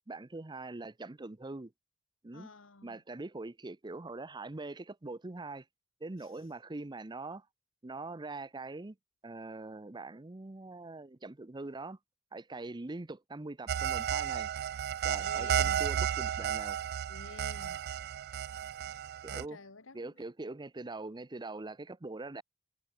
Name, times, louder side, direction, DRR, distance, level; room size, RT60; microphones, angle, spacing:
voice 1, 0.1-1.7 2.2-2.5 2.8-5.7 6.0-7.5 7.8-9.0 9.2-12.0 12.3-14.5 15.0-16.8 19.2-19.6 19.9-22.4, right 2 dB, 20° right, 0.7 m, -43 dB
voice 2, 2.3-3.0 15.2-15.9 17.1-17.8 18.9-19.0 19.3-20.0, left 3 dB, 70° left, 1.8 m, -50 dB
sound 1, 13.7-19.4, right 9 dB, 55° right, 0.3 m, -33 dB
head